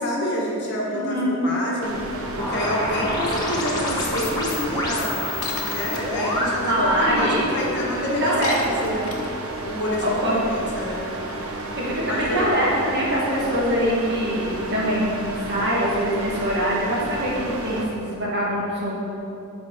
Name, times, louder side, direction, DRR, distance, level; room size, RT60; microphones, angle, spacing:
voice 1, 0.0-2.0 2.4-5.2 5.7-9.0 9.6-10.2 10.5-11.0 12.1-12.5, left 1 dB, 50° left, -3 dB, 1.5 m, -27 dB
voice 2, 0.9-1.5 6.6-7.4 8.1-8.9 10.0-10.4 11.8-19.0, equal, 50° right, -6 dB, 2.1 m, -23 dB
sound 1, 1.8-17.8, right 2 dB, 70° right, 1.0 m, -32 dB
sound 2, 2.4-7.0, left 1 dB, 20° left, 1.1 m, -28 dB
Shatter, 5.4-6.0 8.4-9.5, left 5 dB, 75° left, 0.9 m, -33 dB
11.5 x 5.1 x 4.1 m, 2.7 s
head